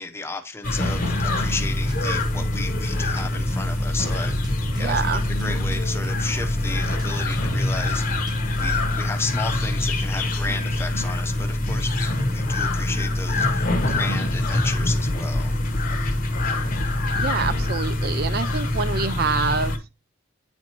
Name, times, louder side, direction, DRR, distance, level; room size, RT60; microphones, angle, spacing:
voice 1, 0.0-4.3 4.8-8.1 8.6-15.6, left 3 dB, 10° left, 0.7 m, -33 dB
sound 1, 0.6-19.8, left 2 dB, 45° left, 1.0 m, -24 dB
sound 2, 1.0-8.9, right 1 dB, 20° right, 1.1 m, -36 dB
voice 2, 4.8-5.2 17.2-19.7, right 5 dB, 50° right, 0.4 m, -26 dB
9.3 x 4.4 x 2.9 m
head